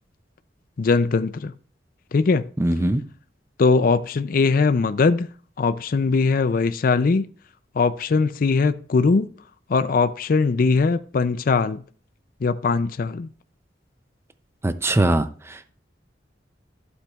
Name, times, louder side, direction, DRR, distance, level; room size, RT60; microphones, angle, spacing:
voice 1, 0.8-1.5 2.1-2.5 3.6-5.3 5.6-7.3 7.7-9.3 9.7-11.8 12.4-13.3, left 4 dB, 50° left, 0.4 m, -20 dB
voice 2, 2.6-3.0 14.6-15.7, right 1 dB, 15° right, 0.4 m, -22 dB
12.0 x 8.0 x 2.4 m
head